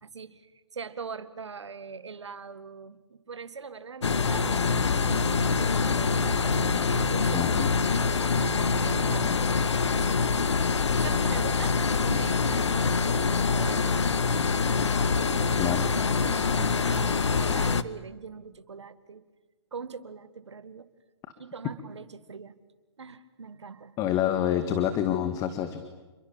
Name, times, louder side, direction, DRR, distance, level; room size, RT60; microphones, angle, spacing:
voice 1, 0.0-10.3 10.8-14.0 15.0-15.8 16.2-19.2 19.7-20.9 21.4-22.6 23.0-24.0, right 5 dB, 80° right, 12 dB, 1.9 m, -42 dB
sound 1, 4.0-17.8, left 5 dB, 85° left, 1.3 m, -25 dB
Telephone, 4.3-5.5 6.3-7.5 8.3-9.5, right 8 dB, 15° right, 1.9 m, -43 dB
voice 2, 7.3-7.7 15.6-15.9 24.0-25.8, left 10 dB, 25° left, 9 dB, 1.9 m, -27 dB
29.0 x 22.5 x 8.8 m, 1.2 s
hypercardioid pair, 135°, 14 cm